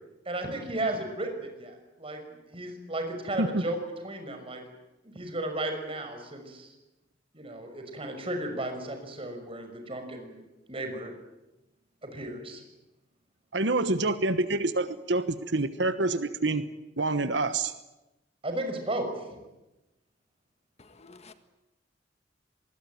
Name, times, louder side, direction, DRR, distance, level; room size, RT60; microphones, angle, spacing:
voice 1, 0.3-3.8 4.0-4.6 5.0-6.7 7.3-10.4 10.7-11.1 12.0-12.6 18.4-19.2, right 1 dB, 30° right, 5 dB, 5.9 m, -34 dB
voice 2, 13.5-16.6 17.0-17.7, right 2 dB, 75° right, 12 dB, 1.2 m, -27 dB
voice 3, 20.8-21.3, left 3 dB, 35° left, 9 dB, 1.7 m, -51 dB
25.5 x 20.5 x 9.3 m, 0.99 s
head